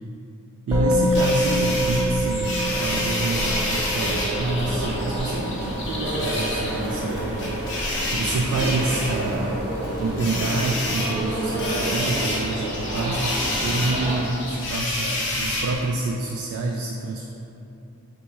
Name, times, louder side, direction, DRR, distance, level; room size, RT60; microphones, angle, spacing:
Musical instrument, 0.7-10.2, equal, 20° right, 0.8 m, -28 dB
voice 1, 0.7-17.3, right 3 dB, 75° right, 0 dB, 0.3 m, -28 dB
sound 1, 1.1-15.8, left 1 dB, 55° left, 0.7 m, -29 dB
sound 2, 2.6-14.2, right 1 dB, 45° right, 0.9 m, -29 dB
4.1 x 2.3 x 4.4 m, 2.8 s
head